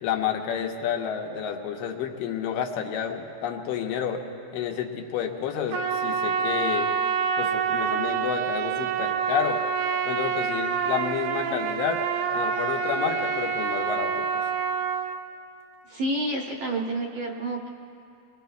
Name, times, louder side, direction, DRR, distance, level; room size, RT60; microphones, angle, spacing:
voice 1, 0.0-4.2 4.5-6.9 7.4-9.6 10.1-12.1 12.3-14.5, left 8 dB, 85° left, 3 dB, 2.6 m, -30 dB
Trumpet, 5.7-15.2, right 6 dB, 85° right, 2.3 m, -27 dB
voice 2, 15.9-17.7, right 1 dB, 70° right, -1 dB, 1.6 m, -29 dB
25.5 x 21.0 x 2.3 m, 2.6 s
omnidirectional pair, 3.9 m